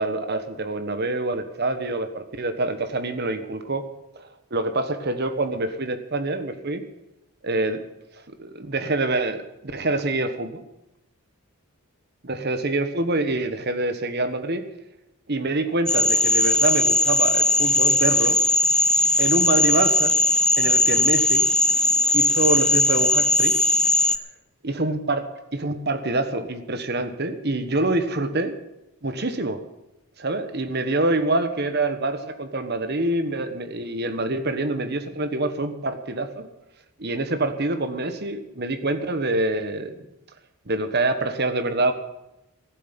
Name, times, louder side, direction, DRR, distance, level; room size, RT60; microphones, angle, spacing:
voice 1, 0.0-3.8 4.2-6.8 7.4-7.8 8.1-10.6 12.2-14.6 15.3-18.4 19.2-20.2 20.6-21.4 22.1-23.5 24.6-28.6 29.0-29.6 30.2-36.5 37.0-39.9 40.7-41.9, right 2 dB, 50° right, 8 dB, 1.3 m, -26 dB
Frog, 15.9-24.2, left 1 dB, 5° left, 0.4 m, -19 dB
13.5 x 8.0 x 9.1 m, 0.91 s
head